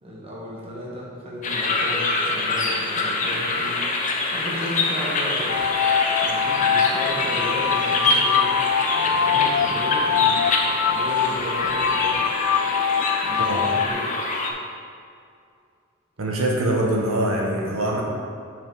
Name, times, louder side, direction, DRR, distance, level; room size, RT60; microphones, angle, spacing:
voice 1, 0.0-3.8 4.3-5.6 6.2-8.6 8.9-10.5 10.9-12.3 13.2-14.1, equal, 25° right, -4 dB, 1.3 m, -34 dB
sound 1, 1.4-14.5, left 3 dB, 35° left, 0.7 m, -25 dB
sound 2, 5.5-13.9, left 7 dB, 70° left, 0.3 m, -23 dB
voice 2, 16.2-18.0, right 1 dB, 85° right, -1 dB, 1.1 m, -23 dB
6.1 x 5.1 x 5.4 m, 2.3 s
head